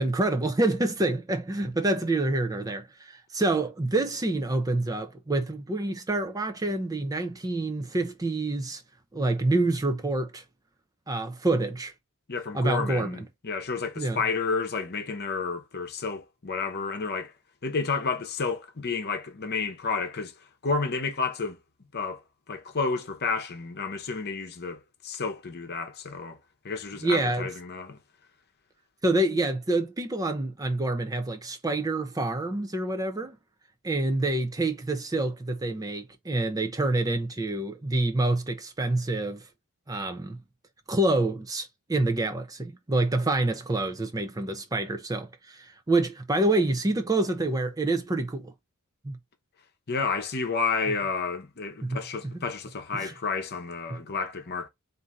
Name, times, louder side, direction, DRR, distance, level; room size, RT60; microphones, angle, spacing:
voice 1, 0.0-8.8 9.1-10.4 11.1-11.9 12.5-13.2 14.0-14.2 27.0-27.5 29.0-33.4 33.8-39.5 39.9-40.4 40.9-48.5 49.0-49.2 51.8-52.0 52.9-53.1 53.9-54.0, right 2 dB, 15° right, 0.5 m, -27 dB
voice 2, 12.3-17.3 17.6-20.3 20.6-21.6 21.9-22.2 22.5-26.4 26.6-28.0 49.9-54.7, left 4 dB, 45° left, 0.9 m, -31 dB
4.3 x 2.7 x 3.7 m
head